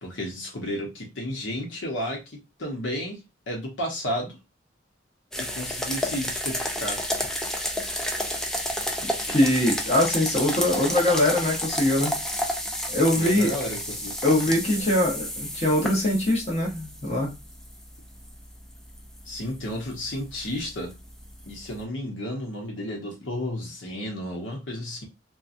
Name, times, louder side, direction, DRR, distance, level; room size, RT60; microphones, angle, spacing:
voice 1, 0.0-4.4 5.4-7.0 13.1-14.5 19.3-20.9 21.5-25.1, equal, 80° left, 0.9 m, -32 dB
sound 1, 5.3-21.8, equal, 5° left, 0.3 m, -31 dB
voice 2, 9.3-12.2 12.9-13.5 14.2-17.3, left 1 dB, 35° left, 0.9 m, -22 dB
2.9 x 2.2 x 2.5 m
head